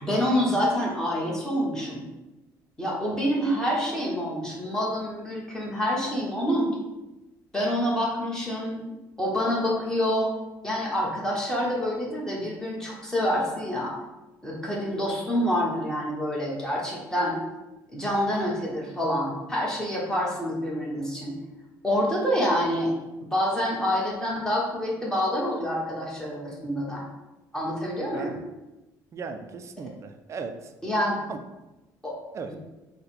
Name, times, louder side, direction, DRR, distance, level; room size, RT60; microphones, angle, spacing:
voice 1, 0.0-2.0 2.8-6.7 7.5-8.9 9.2-10.3 10.6-13.9 14.4-17.4 17.9-21.4 21.8-22.9 23.2-27.0 27.5-28.4 30.8-31.2 32.0-32.1 32.5-32.6, equal, 10° left, -4 dB, 1.3 m, -27 dB
voice 2, 29.1-30.7 31.3-31.4 32.3-32.5, right 5 dB, 40° right, 6 dB, 0.4 m, -36 dB
4.1 x 2.2 x 4.1 m, 1.0 s
cardioid pair, 95°, 8 cm